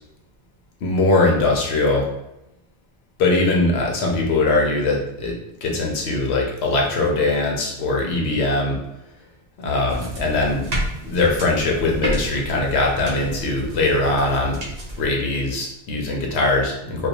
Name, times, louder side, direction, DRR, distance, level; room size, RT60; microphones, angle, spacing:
voice 1, 0.8-2.1 3.2-5.3 5.6-8.8 9.6-10.7 11.0-14.6 15.0-17.1, left 2 dB, 75° left, 0 dB, 0.9 m, -21 dB
sound 1, 9.9-15.1, equal, 45° right, 0.6 m, -31 dB
2.5 x 2.1 x 2.8 m, 0.87 s
omnidirectional pair, 1.1 m